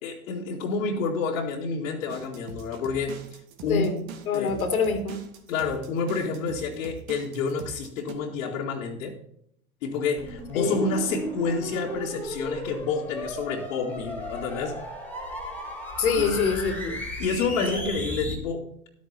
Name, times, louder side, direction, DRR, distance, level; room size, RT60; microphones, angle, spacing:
voice 1, 0.0-3.3 3.6-4.5 5.5-9.2 9.8-14.8 16.2-16.4 17.2-18.8, left 4 dB, 70° left, -3 dB, 2.1 m, -29 dB
sound 1, 2.1-8.1, right 7 dB, 55° right, 2.3 m, -43 dB
voice 2, 3.7-4.0 4.3-5.2 10.5-10.8 16.0-17.0 17.7-17.8, left 5 dB, 85° left, 6 dB, 2.4 m, -25 dB
sound 2, 10.2-18.4, equal, 5° left, 3.3 m, -35 dB
12.0 x 8.9 x 4.4 m, 0.70 s
hypercardioid pair, 100°, 42 cm